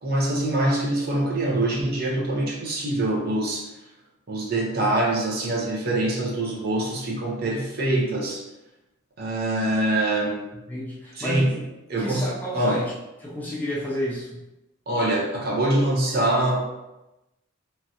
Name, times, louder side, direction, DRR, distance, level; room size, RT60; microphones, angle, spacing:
voice 1, 0.0-3.7 4.3-8.4 9.2-10.5 11.1-11.6 11.9-12.8 14.9-16.6, right 1 dB, 50° right, -3 dB, 0.6 m, -24 dB
voice 2, 10.7-11.7 12.0-12.9 13.2-14.4, equal, 10° left, -6 dB, 0.5 m, -31 dB
3.1 x 2.4 x 2.8 m, 0.96 s
head